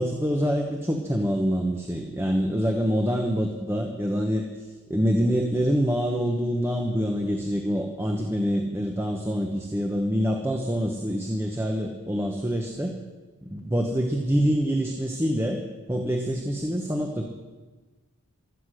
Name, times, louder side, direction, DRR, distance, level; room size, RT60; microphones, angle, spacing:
voice 1, 0.0-13.0 13.4-15.6 15.9-17.3, equal, 10° right, 2 dB, 1.1 m, -26 dB
16.0 x 13.5 x 6.4 m, 1.2 s
head